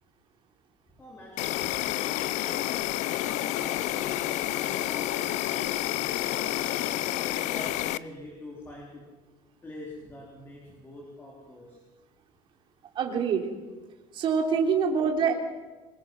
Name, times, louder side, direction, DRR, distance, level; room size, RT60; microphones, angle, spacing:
voice 1, 0.9-5.2 6.2-6.9 7.3-9.2 9.6-11.8, left 1 dB, 15° left, -2 dB, 3.7 m, -45 dB
Insect, 1.4-8.0, left 16 dB, 60° left, 0.7 m, -29 dB
sound 1, 3.1-8.9, left 6 dB, 80° left, 7.8 m, -42 dB
voice 2, 13.0-13.5 14.1-15.3, right 6 dB, 40° right, 2 dB, 3.6 m, -25 dB
25.0 x 22.0 x 6.2 m, 1.3 s
cardioid pair, 170°, 14 cm